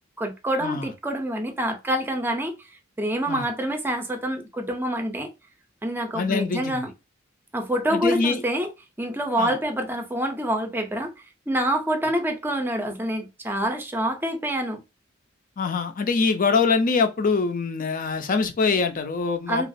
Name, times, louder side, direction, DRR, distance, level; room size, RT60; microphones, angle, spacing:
voice 1, 0.2-2.5 3.0-5.3 5.8-6.9 7.5-8.7 9.0-14.8 19.5-19.7, right 1 dB, 10° right, 0.5 m, -26 dB
voice 2, 6.1-6.9 7.9-8.4 9.4-9.5 15.6-19.7, left 4 dB, 45° left, 0.5 m, -24 dB
3.0 x 2.4 x 2.5 m
head